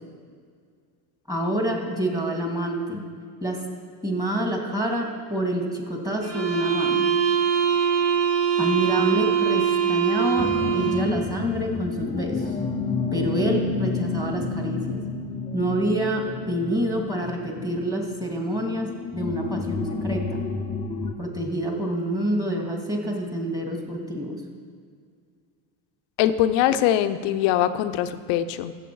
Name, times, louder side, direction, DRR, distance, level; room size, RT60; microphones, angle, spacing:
voice 1, 1.3-3.0 3.4-3.6 4.0-7.1 8.6-12.5 13.1-15.0 15.5-20.4 21.2-24.4, right 1 dB, 10° right, 1 dB, 2.3 m, -27 dB
sound 1, 6.2-11.2, right 7 dB, 30° right, 1.5 m, -23 dB
sound 2, 10.4-21.1, left 4 dB, 10° left, 0.7 m, -30 dB
voice 2, 26.2-28.7, left 11 dB, 60° left, 10 dB, 0.8 m, -22 dB
15.0 x 7.5 x 4.7 m, 2.1 s
supercardioid pair, 95°, 47 cm